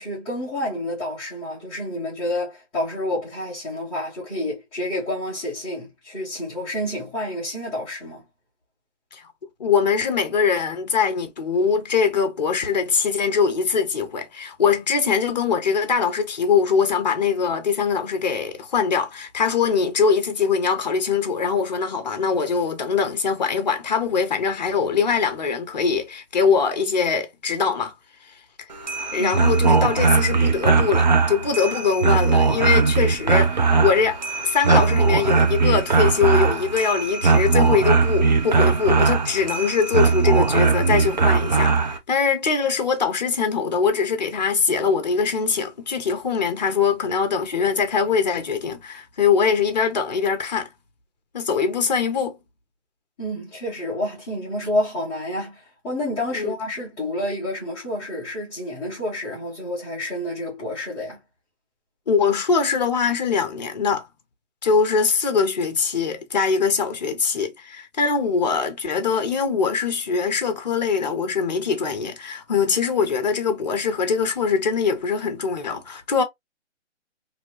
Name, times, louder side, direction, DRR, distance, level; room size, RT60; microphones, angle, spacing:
voice 1, 0.0-8.2 29.2-29.3 53.2-61.2, left 1 dB, 5° left, 0.8 m, -29 dB
voice 2, 9.6-27.9 29.1-34.2 34.4-50.7 51.3-52.4 56.3-56.6 62.1-64.0 64.6-76.2, left 6 dB, 35° left, 0.8 m, -22 dB
sound 1, 28.7-42.0, right 4 dB, 40° right, 0.6 m, -19 dB
3.0 x 2.7 x 2.9 m
hypercardioid pair, 165°, 36 cm